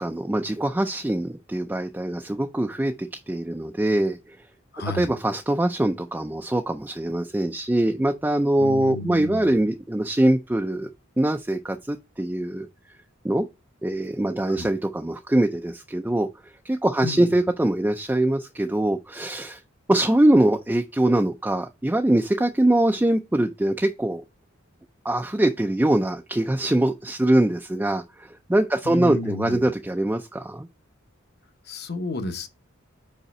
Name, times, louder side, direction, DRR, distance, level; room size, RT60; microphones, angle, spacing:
voice 1, 0.0-4.4 4.9-10.9 11.2-12.7 13.2-13.5 13.8-16.3 16.6-19.6 19.9-24.2 25.0-30.7, right 1 dB, 10° right, 0.4 m, -23 dB
voice 2, 4.7-5.1 8.6-9.6 14.5-14.7 17.0-17.3 28.8-29.6 31.7-32.5, left 2 dB, 50° left, 0.9 m, -32 dB
5.4 x 4.9 x 4.2 m
head